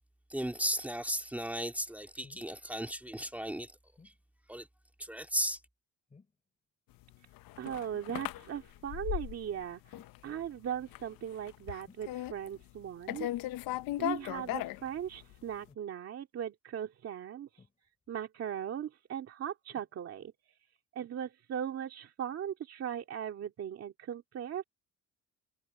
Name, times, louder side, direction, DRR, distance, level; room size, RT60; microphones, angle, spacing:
voice 1, 0.3-3.8 4.5-4.7 5.0-5.6, equal, 5° right, 2.4 m, -35 dB
sound 1, 2.2-2.6 4.0-4.2 6.1-6.5 7.9-8.2 10.0-10.2 11.9-12.1 13.7-13.9 15.6-15.9 17.6-18.1 19.7-19.9 20.8-20.9, left 4 dB, 20° left, 7.4 m, -60 dB
sound 2, 7.1-9.6 9.9-10.5 10.8-11.1 11.4-12.8 13.1-15.4, left 15 dB, 90° left, 0.7 m, -37 dB
voice 2, 7.6-9.8 10.2-13.3 14.0-17.5 18.1-20.3 21.0-24.6, right 9 dB, 45° right, 2.1 m, -38 dB
cardioid pair, 170°, 33 cm